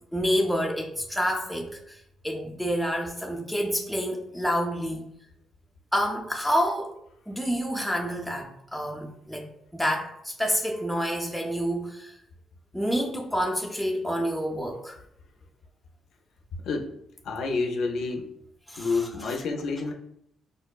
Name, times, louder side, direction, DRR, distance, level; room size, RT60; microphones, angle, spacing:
voice 1, 0.1-5.1 5.9-7.0 7.3-9.5 9.7-12.2 12.7-15.0 18.7-19.4, equal, ahead, 1 dB, 0.5 m, -28 dB
voice 2, 17.2-18.3 18.8-19.9, left 4 dB, 75° left, 3 dB, 0.4 m, -28 dB
4.9 x 2.0 x 2.3 m, 0.75 s
cardioid pair, 90°, 0 cm